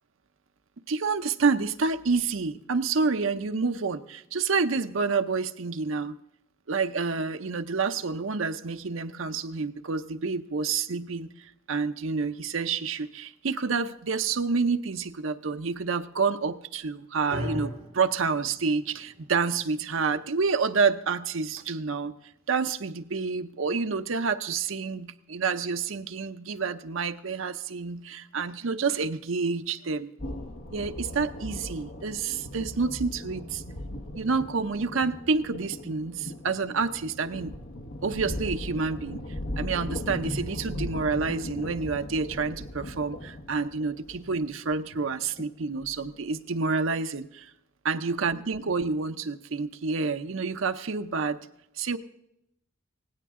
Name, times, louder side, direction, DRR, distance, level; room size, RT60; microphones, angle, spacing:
voice 1, 0.9-6.2 6.7-11.3 11.7-22.1 22.5-30.1 30.7-33.6 34.1-37.6 38.0-39.2 39.6-47.5 47.8-51.4 51.8-52.0, right 4 dB, 70° right, 9 dB, 0.7 m, -28 dB
sound 1, 17.3-25.5, equal, 50° right, 4.7 m, -43 dB
sound 2, 30.2-46.4, left 1 dB, 60° left, 1.4 m, -38 dB
17.5 x 16.5 x 3.7 m, 0.82 s
head